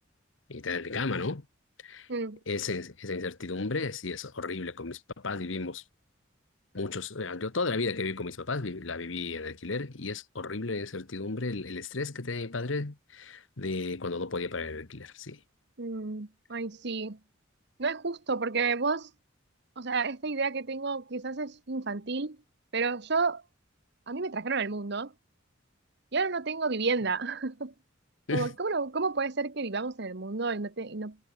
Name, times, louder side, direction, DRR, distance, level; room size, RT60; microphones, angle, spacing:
voice 1, 0.5-1.4 1.8-2.1 2.5-5.8 6.7-15.4 28.3-28.5, left 3 dB, 75° left, 1.3 m, -34 dB
voice 2, 15.8-17.2 17.8-19.1 19.8-22.4 22.7-23.4 24.1-25.1 26.1-27.7 28.3-31.2, right 4 dB, 60° right, 1.2 m, -31 dB
head